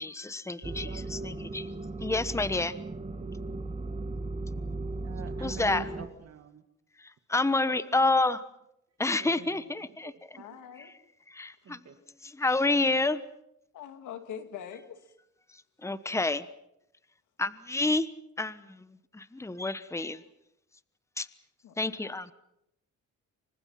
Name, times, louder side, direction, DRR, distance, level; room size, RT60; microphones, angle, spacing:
voice 1, 0.0-1.7 2.0-2.7 5.4-5.8 7.3-8.4 9.0-10.1 11.3-11.8 12.4-13.2 15.8-16.4 17.4-18.1 18.4-18.9 19.1-20.2 21.2-21.3 21.8-22.3, left 2 dB, 10° left, 14 dB, 1.2 m, -28 dB
sound 1, 0.6-6.1, right 2 dB, 20° right, 2.0 m, -37 dB
voice 2, 0.6-1.5 5.0-6.6 7.7-8.1 9.2-10.2 11.6-12.0, right 7 dB, 55° right, 7 dB, 2.1 m, -45 dB
voice 3, 10.4-10.9 13.7-15.1 21.6-22.1, left 8 dB, 80° left, 8 dB, 2.8 m, -43 dB
28.5 x 25.5 x 5.9 m, 0.81 s
cardioid pair, 90°, 30 cm